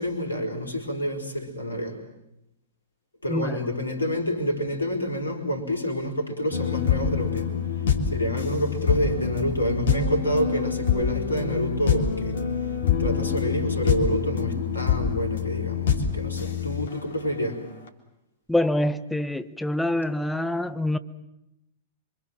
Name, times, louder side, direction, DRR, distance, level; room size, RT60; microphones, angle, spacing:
voice 1, 0.0-2.0 3.2-7.5 8.1-12.4 13.0-17.6, equal, 80° left, 4.7 m, -28 dB
sound 1, 6.5-17.3 17.9-18.0, left 7 dB, 65° left, 3.3 m, -26 dB
voice 2, 18.5-21.0, left 1 dB, 5° left, 1.3 m, -25 dB
27.5 x 25.0 x 7.6 m
figure-of-eight pair, 100°, 0 cm